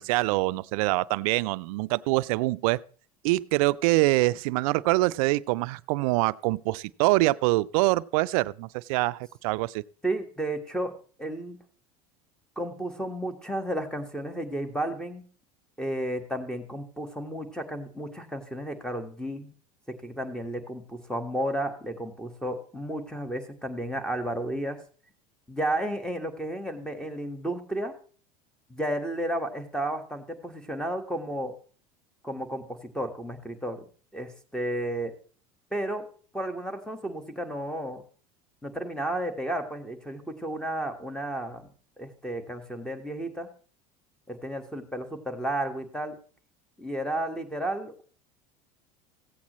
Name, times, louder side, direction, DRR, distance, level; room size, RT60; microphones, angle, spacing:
voice 1, 0.0-2.8 3.2-9.8, right 20 dB, 70° right, 0.4 m, -25 dB
voice 2, 10.0-11.6 12.6-15.2 15.8-19.5 19.9-24.8 25.5-27.9 28.7-31.6 32.2-33.9 34.1-35.2 35.7-36.1 36.3-38.0 38.6-41.7 42.0-43.5 44.3-46.2 46.8-48.0, right 1 dB, 5° left, 1.6 m, -32 dB
15.5 x 8.4 x 3.1 m
supercardioid pair, 100°, 19 cm